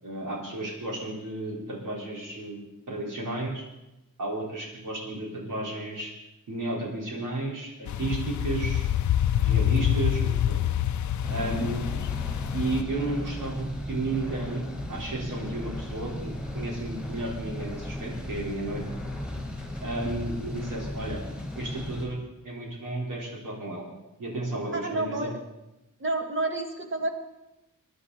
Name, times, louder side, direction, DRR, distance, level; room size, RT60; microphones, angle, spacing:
voice 1, 0.0-3.6 4.2-6.1 6.5-8.9 9.4-10.6 11.3-11.8 12.5-18.9 19.8-21.2 21.5-23.8 24.2-25.3, right 2 dB, 75° right, -3 dB, 4.7 m, -33 dB
sound 1, 7.9-12.8, left 10 dB, 65° left, 0.5 m, -26 dB
sound 2, 11.2-22.1, left 1 dB, ahead, 4.4 m, -36 dB
voice 2, 24.7-25.4 26.0-27.1, right 2 dB, 40° right, 4 dB, 1.8 m, -30 dB
23.0 x 11.0 x 4.3 m, 0.95 s
wide cardioid pair, 180°, 32 cm